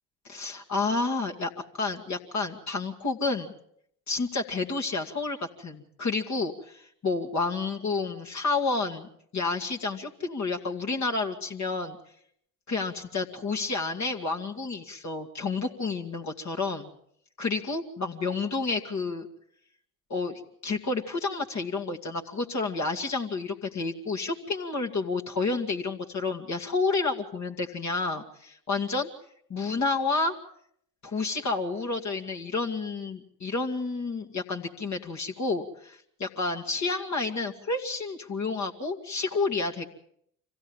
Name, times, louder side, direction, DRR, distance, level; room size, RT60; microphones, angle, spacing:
voice 1, 0.2-3.5 4.1-12.0 12.7-16.9 17.4-19.3 20.1-29.1 29.5-30.3 31.0-39.8, left 3 dB, 40° left, 2 dB, 2.2 m, -30 dB
26.0 x 16.5 x 7.2 m, 0.69 s
hypercardioid pair, 55°, 44 cm